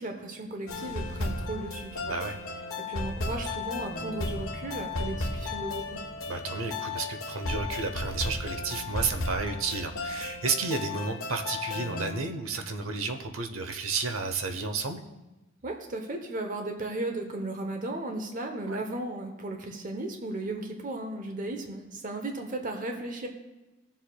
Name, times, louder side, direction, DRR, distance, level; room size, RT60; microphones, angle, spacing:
voice 1, 0.0-2.1 2.8-6.0 15.6-23.3, right 2 dB, 40° right, 4 dB, 0.8 m, -35 dB
sound 1, 0.7-12.1, left 2 dB, 85° left, 1.2 m, -34 dB
voice 2, 2.0-2.4 6.3-15.0 18.7-18.8, right 4 dB, 85° right, 7 dB, 0.8 m, -32 dB
16.5 x 7.3 x 2.3 m, 1.1 s
head